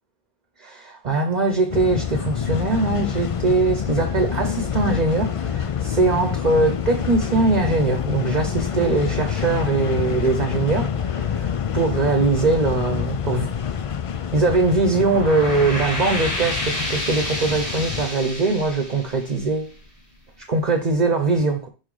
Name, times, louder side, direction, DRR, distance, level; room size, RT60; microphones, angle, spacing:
voice 1, 0.6-13.5 14.3-19.7 20.5-21.7, right 3 dB, 45° right, 1.0 m, -21 dB
sound 1, 1.7-18.1, left 8 dB, 45° left, 0.4 m, -27 dB
sound 2, 14.9-20.1, left 1 dB, 90° left, 2.6 m, -30 dB
6.2 x 4.7 x 4.8 m
omnidirectional pair, 1.1 m